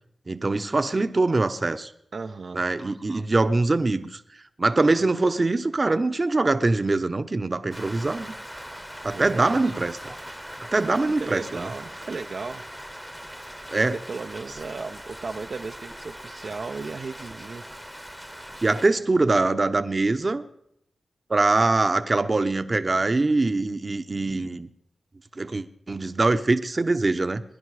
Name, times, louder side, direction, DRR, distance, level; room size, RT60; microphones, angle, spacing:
voice 1, 0.3-1.9 2.5-4.2 4.6-8.3 9.0-10.2 10.7-11.7 13.7-13.9 18.6-20.4 21.3-24.7 25.4-27.4, right 3 dB, 40° right, 10 dB, 0.8 m, -23 dB
voice 2, 2.1-2.6 9.1-9.7 10.8-12.6 13.7-17.6, right 4 dB, 65° right, 5 dB, 0.6 m, -35 dB
Rain, 7.7-18.9, equal, 5° right, 0.9 m, -40 dB
23.0 x 10.5 x 4.8 m, 0.77 s
cardioid pair, 60°, 0 cm